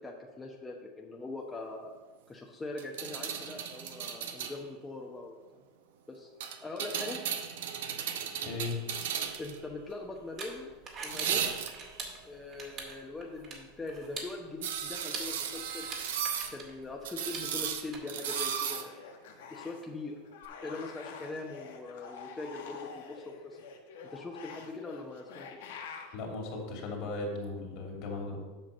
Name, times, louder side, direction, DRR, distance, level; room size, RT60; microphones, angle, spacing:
voice 1, 0.0-1.9 2.3-5.4 6.1-7.2 9.4-10.7 11.0-11.6 12.2-15.9 16.5-18.9 19.5-20.2 20.6-23.6 24.1-25.6, left 3 dB, 15° left, -1 dB, 1.1 m, -42 dB
sound 1, 2.8-4.6 6.4-9.6 11.1-12.0 14.6-16.5 17.0-18.9 20.4-20.5, right 8 dB, 75° right, 0.8 m, -35 dB
voice 2, 8.4-8.8 26.1-28.4, left 3 dB, 60° left, 0 dB, 2.6 m, -37 dB
sound 2, 9.3-18.0, right 4 dB, 45° right, 2.1 m, -45 dB
sound 3, 18.0-19.9 20.2-26.2, left 6 dB, 75° left, 1.0 m, -47 dB
7.8 x 5.8 x 5.6 m, 1.3 s
hypercardioid pair, 95°, 0 cm